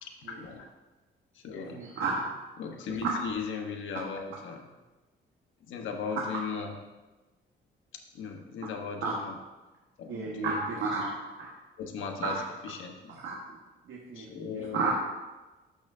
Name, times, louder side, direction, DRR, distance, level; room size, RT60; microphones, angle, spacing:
voice 1, 0.0-0.7 1.3-1.9 2.6-4.6 5.7-6.7 8.1-9.4 10.0-10.7 11.8-13.2 14.1-14.9, left 5 dB, 80° left, 3 dB, 1.2 m, -37 dB
voice 2, 1.7-2.2 3.0-3.1 9.0-9.1 10.1-11.5 12.2-12.3 13.2-13.6 13.9-14.9, right 4 dB, 75° right, -3 dB, 1.5 m, -32 dB
11.5 x 6.5 x 2.7 m, 1.1 s
cardioid pair, 90°, 20 cm